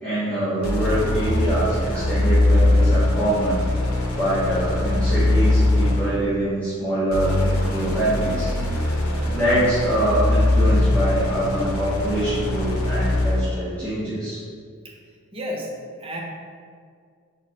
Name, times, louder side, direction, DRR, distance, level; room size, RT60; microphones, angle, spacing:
voice 1, 0.0-3.6 4.1-8.8 9.2-14.4, right 1 dB, 5° left, -14 dB, 0.9 m, -24 dB
sound 1, 0.6-6.2 7.1-13.5, left 2 dB, 75° left, 0.7 m, -21 dB
voice 2, 15.3-16.2, equal, 25° right, -1 dB, 0.6 m, -32 dB
4.5 x 3.7 x 2.9 m, 2.1 s
head